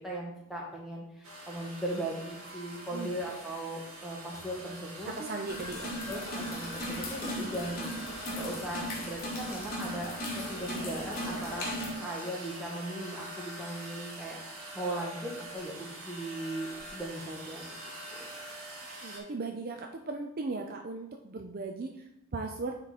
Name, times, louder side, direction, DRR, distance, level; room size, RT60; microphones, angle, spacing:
voice 1, 0.0-5.3 6.1-11.7 12.0-17.8 18.1-18.3, right 1 dB, ahead, -4 dB, 1.6 m, -38 dB
sound 1, 1.2-19.2, right 1 dB, 80° right, 2.0 m, -44 dB
voice 2, 5.1-6.1 19.0-22.8, right 3 dB, 40° right, 4 dB, 0.5 m, -38 dB
sound 2, 5.5-11.9, equal, 40° left, 1.6 m, -37 dB
9.3 x 4.0 x 4.1 m, 0.83 s
head